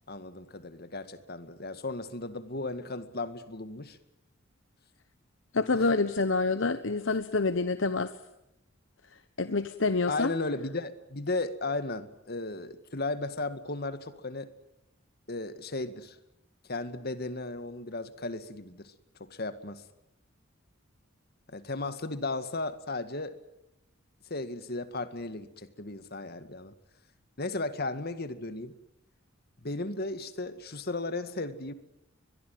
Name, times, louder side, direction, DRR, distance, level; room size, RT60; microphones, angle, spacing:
voice 1, 0.1-4.0 5.7-5.9 10.1-14.5 15.3-16.2 16.7-18.9 19.3-19.8 21.5-23.4 24.3-26.7 27.4-28.7 29.6-31.7, left 2 dB, 50° left, 11 dB, 2.0 m, -35 dB
voice 2, 5.5-8.1 9.4-10.3, left 3 dB, 65° left, 11 dB, 1.1 m, -27 dB
22.5 x 22.5 x 9.4 m, 0.86 s
head